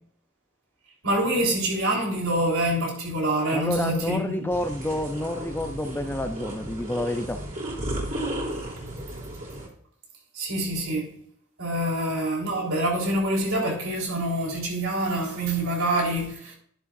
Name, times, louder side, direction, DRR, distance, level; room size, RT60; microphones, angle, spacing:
voice 1, 1.0-4.5 10.3-11.1 11.6-16.5, right 1 dB, 90° right, 4.2 m, -26 dB
voice 2, 3.5-7.4, left 1 dB, 10° left, 0.6 m, -29 dB
sound 1, 4.5-9.7, right 1 dB, 40° right, 3.5 m, -34 dB
11.0 x 11.0 x 2.6 m
head